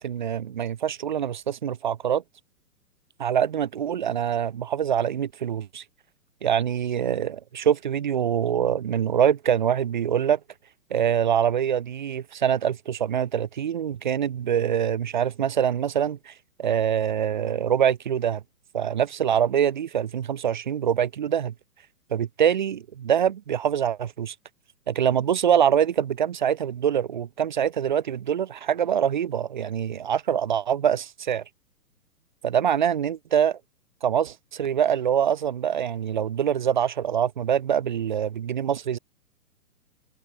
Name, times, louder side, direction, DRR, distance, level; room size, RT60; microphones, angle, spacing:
voice 1, 0.0-2.2 3.2-5.8 6.4-10.4 10.9-16.3 16.6-18.4 18.7-21.5 22.1-24.3 24.9-31.4 32.4-33.6 34.0-39.0, right 9 dB, 35° right, 0.5 m, -24 dB
figure-of-eight pair, 120°, 44 cm